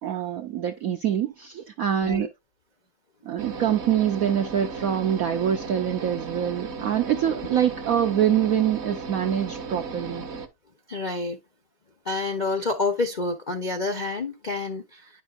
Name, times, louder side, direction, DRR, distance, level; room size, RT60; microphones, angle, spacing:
voice 1, 0.0-2.3 3.2-10.3, right 9 dB, 70° right, 0.8 m, -25 dB
sound 1, 3.4-10.5, right 4 dB, 45° right, 0.9 m, -36 dB
voice 2, 10.9-11.4 12.0-15.2, left 3 dB, 50° left, 0.5 m, -28 dB
9.7 x 5.4 x 2.4 m
omnidirectional pair, 2.1 m